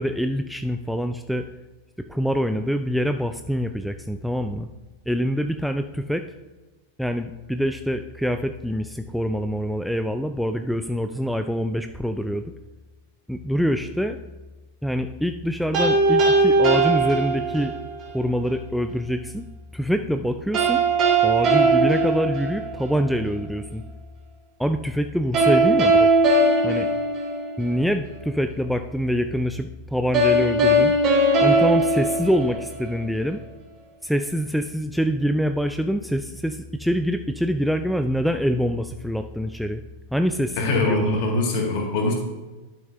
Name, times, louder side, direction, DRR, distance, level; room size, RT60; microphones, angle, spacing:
voice 1, 0.0-1.5 2.1-4.7 5.1-6.2 7.0-12.5 13.3-14.2 14.8-17.7 18.1-19.4 19.7-20.8 21.2-23.8 24.6-26.1 26.6-26.9 27.6-30.9 31.4-33.4 34.0-39.8 40.1-41.2, equal, ahead, 7 dB, 0.3 m, -25 dB
sound 1, 15.7-17.9 20.5-23.0 25.3-27.9 30.1-33.0, right 2 dB, 35° right, 2.3 m, -19 dB
voice 2, 40.6-42.1, left 2 dB, 45° left, 0 dB, 2.2 m, -23 dB
11.5 x 6.4 x 2.8 m, 1.2 s
figure-of-eight pair, 90°, 0 cm